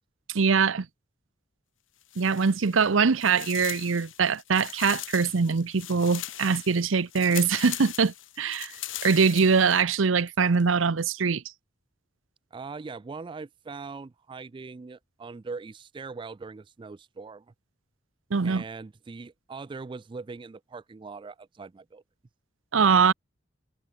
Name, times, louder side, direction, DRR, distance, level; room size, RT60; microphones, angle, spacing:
voice 1, 0.3-0.9 2.2-11.5 18.3-18.6 22.7-23.1, right 5 dB, 85° right, 0.7 m, -23 dB
sound 1, 2.0-2.9 3.2-9.8, left 14 dB, 80° left, 2.6 m, -40 dB
sound 2, 2.6-3.4 4.2-4.3 5.2-6.0 6.3-7.1 7.6-8.8 9.1-9.2 9.5-9.7 10.2-11.1 11.5-11.6, left 13 dB, 60° left, 7.8 m, -68 dB
voice 2, 12.5-17.5 18.4-22.0, right 4 dB, 25° right, 0.3 m, -41 dB
head